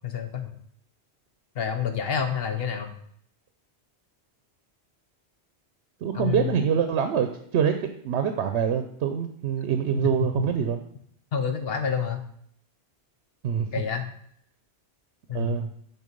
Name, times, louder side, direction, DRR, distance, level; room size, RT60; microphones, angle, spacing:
voice 1, 0.0-0.5 1.5-2.9 6.1-6.7 9.9-10.3 11.3-12.2 13.7-14.1 15.3-15.6, left 7 dB, 65° left, 7 dB, 1.0 m, -28 dB
voice 2, 6.0-10.8 13.4-13.7 15.3-15.7, right 8 dB, 90° right, 7 dB, 0.9 m, -25 dB
6.7 x 4.3 x 5.1 m, 0.66 s
omnidirectional pair, 1.1 m